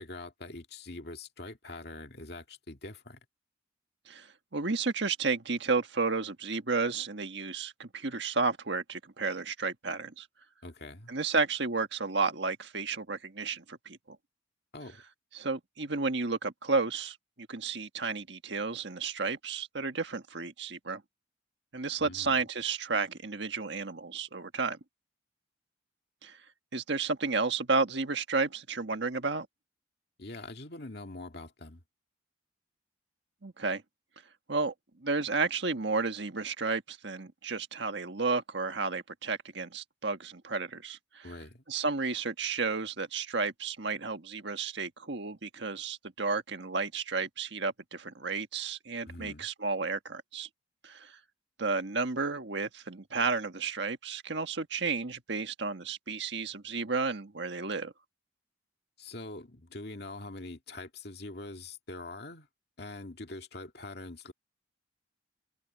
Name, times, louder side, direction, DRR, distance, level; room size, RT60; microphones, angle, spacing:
voice 1, 0.0-3.2 10.6-11.1 14.7-15.0 22.0-22.4 30.2-31.8 41.2-41.6 49.0-49.5 59.0-62.5 62.8-64.3, left 2 dB, 55° left, 2.3 m, -44 dB
voice 2, 4.1-10.3 11.1-14.2 15.3-21.0 21.7-24.8 26.2-26.4 26.7-29.5 33.4-33.8 34.5-34.7 35.0-41.3 41.7-50.5 50.8-51.2 51.6-57.9, right 4 dB, 65° right, 1.6 m, -32 dB
head